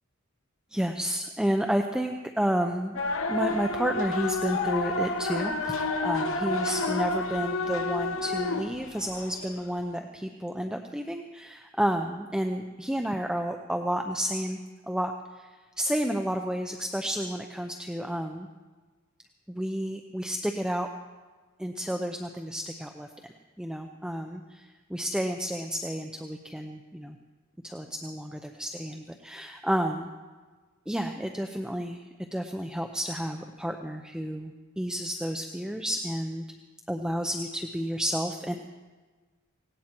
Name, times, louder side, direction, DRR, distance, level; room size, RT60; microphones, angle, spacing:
voice 1, 0.7-3.0 3.3-14.6 14.9-15.1 15.4-15.5 15.8-18.5 19.5-20.9 21.6-23.1 23.6-27.2 27.6-30.1 30.9-32.0 32.3-36.4 36.9-38.6, equal, 5° right, 4 dB, 0.6 m, -31 dB
sound 1, 3.0-9.6, left 2 dB, 70° left, 1.1 m, -30 dB
18.0 x 17.5 x 4.5 m, 1.4 s
head